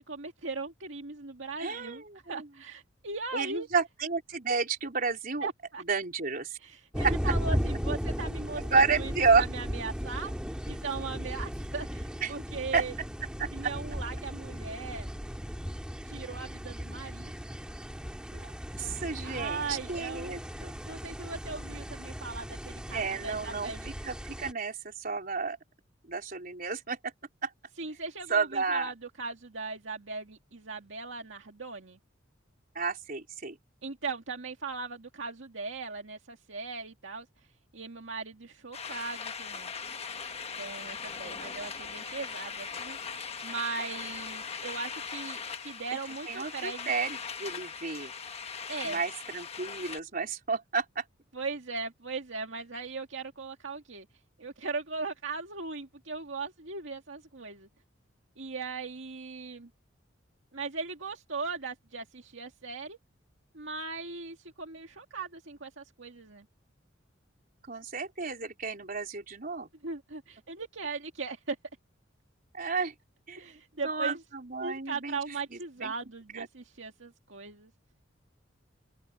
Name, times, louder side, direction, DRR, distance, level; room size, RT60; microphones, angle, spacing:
voice 1, 0.0-3.7 5.4-5.8 6.6-9.1 9.4-10.3 10.7-12.9 13.5-15.1 16.0-17.3 19.2-20.3 20.9-23.9 27.8-32.0 33.8-37.3 37.7-39.7 40.5-43.0 43.4-46.9 48.7-49.0 51.3-54.1 54.4-57.7 58.4-59.7 60.5-63.0 63.5-66.5 69.8-71.6 73.4-74.2 74.6-77.7, right 4 dB, 75° right, 2.0 m, -38 dB
voice 2, 1.6-2.5 3.3-5.5 5.9-6.6 7.0-7.3 8.6-9.5 12.2-12.3 12.7-12.8 13.4-13.7 18.3-20.8 22.9-23.7 24.0-25.6 26.0-27.1 27.4-27.5 28.3-28.9 32.7-33.6 46.3-48.1 48.8-51.0 67.7-69.7 72.5-72.9 73.3-73.6 73.8-75.2 75.8-75.9 76.3-76.5, right 4 dB, 45° right, 4.5 m, -31 dB
sound 1, 6.9-24.5, equal, 5° right, 2.5 m, -36 dB
sound 2, 38.7-50.0, left 6 dB, 35° left, 1.3 m, -40 dB
open air
head